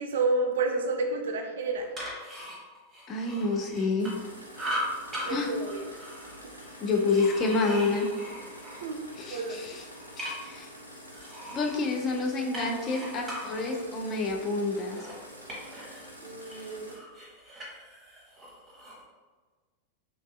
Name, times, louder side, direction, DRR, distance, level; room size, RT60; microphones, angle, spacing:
voice 1, 0.0-1.9 5.2-5.8 8.8-9.0 9.3-9.8 16.2-17.0, right 3 dB, 60° right, 3 dB, 0.3 m, -30 dB
sound 1, 1.7-4.3 4.5-5.3 5.6-9.2 9.6-10.6 11.1-16.1 16.4-19.0, equal, 15° right, 1.0 m, -40 dB
voice 2, 3.1-4.1 5.3-5.5 6.8-8.1 9.2-9.9 10.2-10.7 11.5-15.1, left 3 dB, 30° left, 1 dB, 0.4 m, -28 dB
sound 2, 4.0-17.0, equal, 90° left, 0.4 m, -47 dB
3.0 x 2.5 x 2.3 m, 1.4 s
figure-of-eight pair, 90°, 0 cm